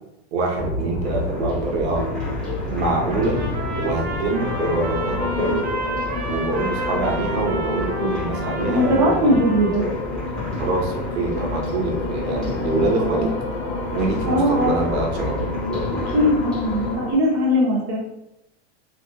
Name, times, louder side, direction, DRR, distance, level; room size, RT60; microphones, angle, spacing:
voice 1, 0.3-2.1 2.7-3.4 3.8-5.7 6.2-9.4 10.6-13.3 13.9-15.5, right 3 dB, 70° right, 0 dB, 1.0 m, -25 dB
sound 1, 0.5-17.1, left 2 dB, 60° left, 1.0 m, -29 dB
sound 2, 1.0-16.9, left 2 dB, ahead, 0.7 m, -31 dB
Trumpet, 3.1-9.8, right 2 dB, 40° right, 0.7 m, -32 dB
voice 2, 8.6-9.9 12.8-13.3 14.3-14.8 16.1-18.0, equal, 15° right, -3 dB, 0.3 m, -20 dB
3.1 x 2.9 x 2.7 m, 0.88 s
supercardioid pair, 180°, 33 cm